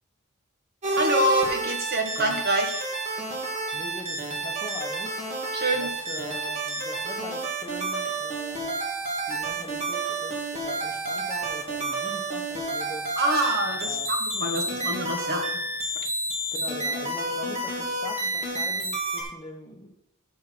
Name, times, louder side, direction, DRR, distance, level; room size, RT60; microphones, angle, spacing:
sound 1, 0.8-19.2, right 2 dB, 35° right, 2.0 m, -30 dB
voice 1, 1.0-2.9 5.5-5.9 13.2-15.4, right 1 dB, 50° right, 4 dB, 1.4 m, -26 dB
voice 2, 3.7-5.4 5.7-8.7 9.3-13.1 13.8-14.1 14.5-14.9 16.5-19.9, left 1 dB, 20° left, 3 dB, 1.1 m, -41 dB
6.5 x 6.5 x 6.0 m, 0.80 s
head